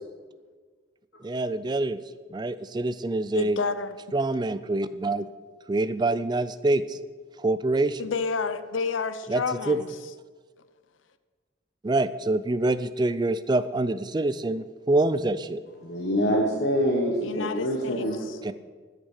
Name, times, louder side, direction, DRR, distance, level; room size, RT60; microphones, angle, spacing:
voice 1, 1.2-2.0 2.3-3.6 4.1-5.3 5.7-7.0 7.4-8.0 9.3-9.4 9.7-9.8 11.8-15.6 18.4-18.5, right 2 dB, 20° right, 15 dB, 0.4 m, -25 dB
voice 2, 3.3-4.0 8.0-10.0 17.2-18.4, left 4 dB, 85° left, 12 dB, 0.6 m, -30 dB
voice 3, 15.8-18.2, equal, 60° left, -1 dB, 1.3 m, -25 dB
13.5 x 6.4 x 6.4 m, 1.5 s
head